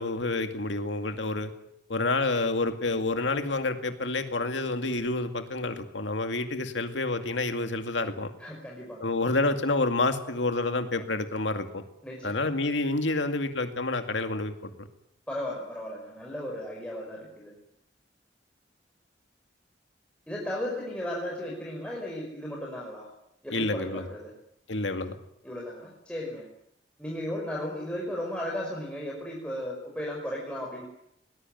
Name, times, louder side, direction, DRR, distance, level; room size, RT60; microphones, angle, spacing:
voice 1, 0.0-1.5 1.9-8.3 9.0-11.8 12.2-14.9 23.5-24.1 24.7-25.2, left 2 dB, 85° left, 7 dB, 2.3 m, -28 dB
voice 2, 8.4-9.1 12.0-12.5 15.3-17.5 20.3-23.1 23.4-24.3 25.4-26.4 27.0-30.8, left 1 dB, 5° left, -3 dB, 5.4 m, -35 dB
22.0 x 20.0 x 9.3 m, 0.76 s
head